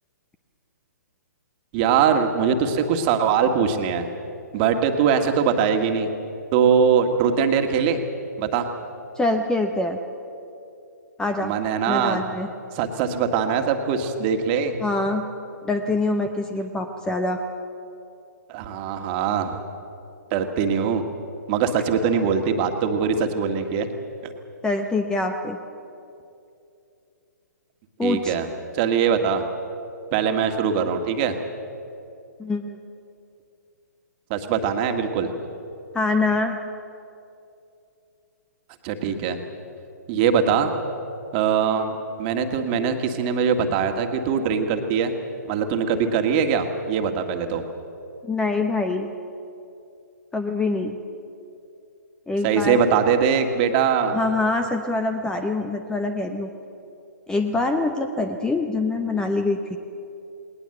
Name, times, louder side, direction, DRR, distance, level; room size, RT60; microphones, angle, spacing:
voice 1, 1.7-4.1 4.5-6.1 6.5-8.0 8.4-8.7 11.4-12.2 12.7-14.8 18.5-19.6 20.3-21.0 21.5-23.9 24.2-24.3 28.0-28.5 28.7-29.5 30.1-31.4 34.3-35.3 38.8-39.4 40.1-40.7 41.3-45.2 45.5-47.6 52.4-54.2, right 7 dB, 35° right, 6 dB, 1.8 m, -22 dB
voice 2, 9.2-10.0 11.2-11.5 11.9-12.5 14.8-15.3 15.6-17.4 24.6-25.6 28.0-28.3 32.4-32.8 35.9-36.6 48.2-49.1 50.3-51.0 52.3-52.8 54.1-56.5 57.3-59.8, left 2 dB, 5° left, 7 dB, 0.9 m, -24 dB
20.0 x 19.5 x 7.9 m, 2.7 s
hypercardioid pair, 130°, 10 cm